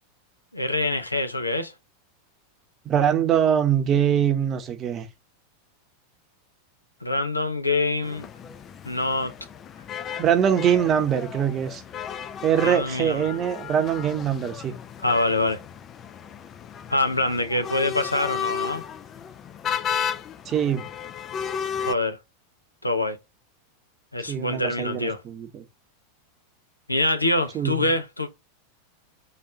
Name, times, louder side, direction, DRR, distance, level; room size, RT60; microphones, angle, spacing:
voice 1, 0.5-1.7 7.0-8.3 8.9-9.3 12.6-13.2 15.0-15.6 16.9-18.8 21.8-22.2 22.8-23.2 24.1-25.2 26.9-28.3, left 2 dB, 90° left, 0.6 m, -25 dB
voice 2, 2.8-5.1 10.2-11.8 12.4-14.7 20.5-20.8 24.3-25.6 27.5-27.9, right 9 dB, 30° right, 0.8 m, -23 dB
sound 1, 8.0-21.9, left 8 dB, 30° left, 0.4 m, -34 dB
4.1 x 2.6 x 4.8 m
figure-of-eight pair, 90°, 0 cm